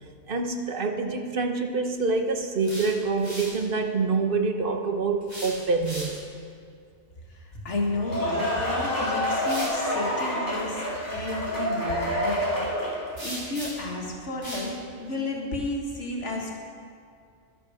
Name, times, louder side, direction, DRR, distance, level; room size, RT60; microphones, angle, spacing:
voice 1, 0.3-6.2, right 4 dB, 50° right, 5 dB, 1.1 m, -26 dB
sound 1, 2.4-3.6 5.2-6.4 8.5-8.6 9.4-9.8 13.2-14.0 14.4-14.7, equal, 20° right, 3.7 m, -38 dB
voice 2, 7.3-10.8 11.1-16.5, left 2 dB, 85° left, -1 dB, 2.1 m, -32 dB
sound 2, 7.8-13.1, equal, 15° left, 3.1 m, -28 dB
13.0 x 11.5 x 5.0 m, 2.3 s
omnidirectional pair, 1.2 m